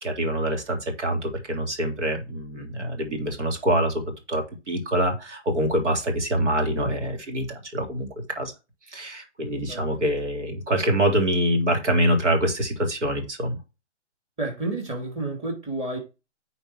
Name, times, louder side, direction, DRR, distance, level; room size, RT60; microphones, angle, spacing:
voice 1, 0.0-4.0 4.3-7.5 7.7-8.5 8.9-13.6, right 1 dB, 75° right, 3.5 m, -25 dB
voice 2, 14.4-16.0, right 2 dB, 20° right, 3.2 m, -30 dB
9.4 x 4.5 x 4.6 m
hypercardioid pair, 140°, 36 cm